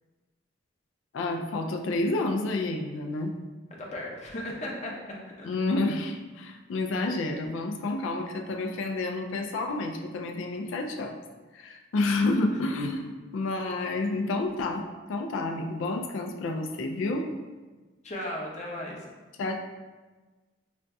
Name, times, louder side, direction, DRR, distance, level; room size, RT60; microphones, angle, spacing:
voice 1, 1.1-3.3 5.4-11.2 11.5-17.3 19.4-19.6, left 2 dB, 75° left, 3 dB, 0.3 m, -29 dB
voice 2, 3.8-5.5 12.6-12.7 18.0-19.0, left 1 dB, 35° left, -2 dB, 0.6 m, -36 dB
5.0 x 2.6 x 2.3 m, 1.3 s
head